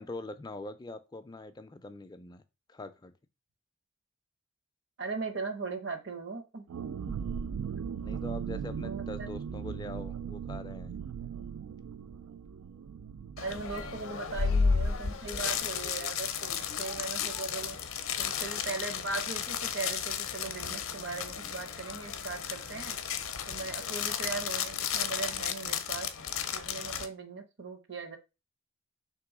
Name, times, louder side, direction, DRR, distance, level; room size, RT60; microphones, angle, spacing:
voice 1, 0.0-2.4 2.7-3.1 7.7-11.0, left 2 dB, 20° left, 9 dB, 0.3 m, -43 dB
voice 2, 5.0-6.7 8.8-9.3 13.4-17.8 18.2-23.0 23.5-26.1 26.5-28.2, right 4 dB, 55° right, 7 dB, 0.8 m, -39 dB
sound 1, 6.7-16.1 16.4-16.5 16.8-17.1, right 7 dB, 90° right, 0.3 m, -39 dB
sound 2, 13.4-27.1, left 6 dB, 70° left, 0.5 m, -33 dB
3.3 x 3.0 x 4.7 m, 0.28 s
head